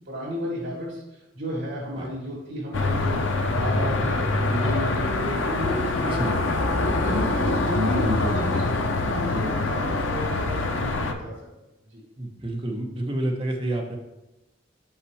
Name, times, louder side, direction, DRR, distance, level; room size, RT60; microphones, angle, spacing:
voice 1, 0.1-1.0 1.3-3.2 3.5-6.4 6.8-11.3 11.9-12.0, equal, 70° right, -9 dB, 2.3 m, -32 dB
sound 1, 2.7-11.1, left 2 dB, 85° left, 0.6 m, -25 dB
voice 2, 6.1-6.5 12.2-14.0, right 1 dB, 30° right, 1 dB, 0.9 m, -29 dB
5.9 x 5.6 x 3.3 m, 0.99 s
head